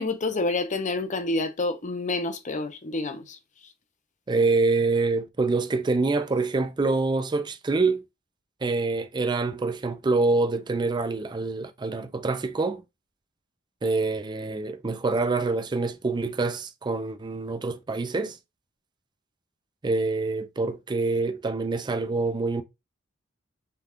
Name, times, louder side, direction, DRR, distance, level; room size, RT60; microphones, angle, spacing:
voice 1, 0.0-3.4, left 2 dB, 40° left, 0.6 m, -28 dB
voice 2, 4.3-8.0 8.6-12.8 13.8-18.4 19.8-22.6, right 3 dB, 20° right, 0.4 m, -26 dB
5.7 x 2.3 x 3.5 m
head